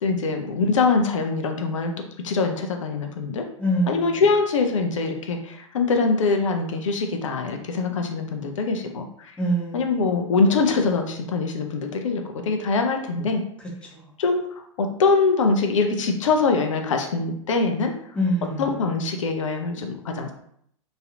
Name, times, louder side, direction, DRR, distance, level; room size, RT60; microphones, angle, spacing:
voice 1, 0.0-1.9 2.2-3.4 3.9-9.3 9.7-13.4 14.2-14.4 14.8-17.9 18.6-20.3, left 4 dB, 75° left, 5 dB, 0.5 m, -23 dB
voice 2, 3.6-4.2 9.4-10.1 13.6-14.0 18.1-18.7, right 1 dB, 5° left, -4 dB, 0.9 m, -26 dB
3.0 x 2.7 x 2.5 m, 0.69 s
hypercardioid pair, 100°, 16 cm